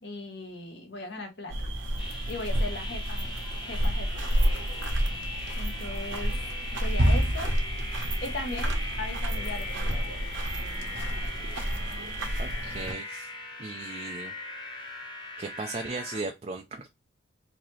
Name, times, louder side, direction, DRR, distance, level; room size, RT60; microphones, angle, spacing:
voice 1, 0.0-1.7 2.3-4.3 5.6-6.3 6.8-7.5 8.2-10.2, left 2 dB, 55° left, 1.0 m, -38 dB
sound 1, 1.5-12.9, equal, 75° right, 1.1 m, -29 dB
sound 2, 2.0-16.2, left 2 dB, 25° left, 0.9 m, -40 dB
voice 2, 12.4-13.3 13.6-14.3 15.4-16.9, right 3 dB, 30° right, 0.4 m, -37 dB
3.9 x 2.8 x 3.1 m
head